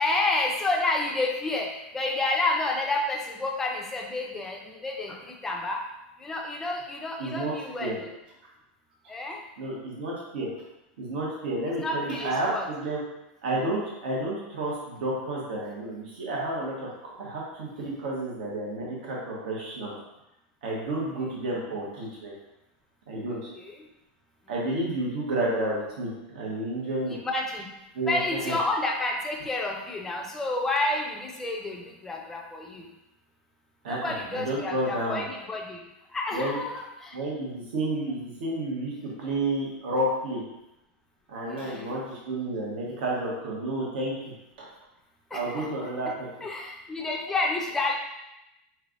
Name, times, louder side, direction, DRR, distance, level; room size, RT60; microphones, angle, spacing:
voice 1, 0.0-1.7 1.9-5.8 6.2-8.1 9.1-9.4 11.8-12.6 23.6-23.7 27.1-27.7 28.1-32.9 33.9-35.8 36.1-37.2 41.5-41.9 45.3-45.7 46.4-48.0, left 2 dB, 5° left, 0 dB, 0.4 m, -30 dB
voice 2, 7.2-7.5 7.8-8.0 9.6-10.5 11.0-13.0 13.4-19.9 20.6-22.3 23.1-23.5 24.5-27.1 27.9-28.5 33.8-35.2 36.3-36.6 37.1-40.4 41.3-44.1 44.6-44.7 45.3-46.3, right 1 dB, 65° right, -4 dB, 1.3 m, -31 dB
4.5 x 3.3 x 2.5 m, 0.91 s
supercardioid pair, 170°, 6 cm